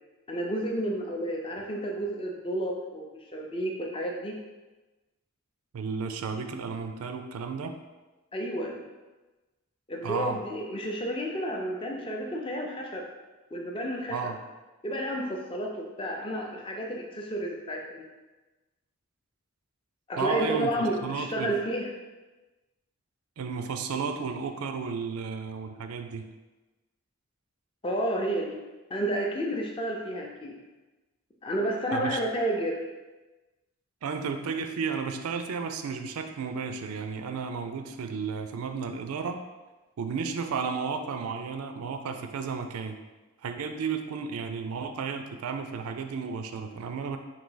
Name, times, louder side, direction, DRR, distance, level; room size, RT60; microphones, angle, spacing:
voice 1, 0.3-4.4 8.3-8.7 9.9-13.1 13.5-14.3 14.8-18.1 20.1-21.9 27.8-28.6 28.9-30.5 31.4-32.9, right 1 dB, 25° left, 0 dB, 0.4 m, -31 dB
voice 2, 5.7-7.8 10.0-10.4 14.1-14.4 20.2-21.5 23.4-26.3 31.9-32.2 34.0-39.4 40.0-43.0 43.4-47.2, right 5 dB, 85° right, 7 dB, 0.4 m, -33 dB
3.8 x 2.6 x 3.9 m, 1.2 s
head